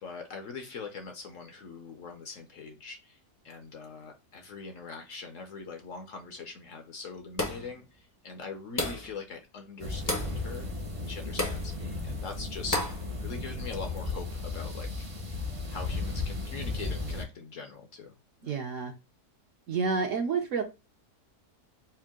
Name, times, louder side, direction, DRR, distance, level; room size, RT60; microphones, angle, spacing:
voice 1, 0.0-3.2 3.4-10.7 11.0-12.9 13.2-15.1 15.7-18.1 18.4-18.5, left 4 dB, 65° left, 0.9 m, -42 dB
sound 1, 7.4-7.7 8.8-9.1 10.1-10.4 11.4-11.7 12.7-13.0, left 1 dB, 25° left, 0.4 m, -31 dB
sound 2, 9.8-17.2, left 3 dB, 35° right, 0.5 m, -35 dB
voice 2, 18.4-18.9 19.7-20.6, right 5 dB, 65° right, 0.8 m, -29 dB
4.4 x 2.2 x 3.5 m
omnidirectional pair, 1.8 m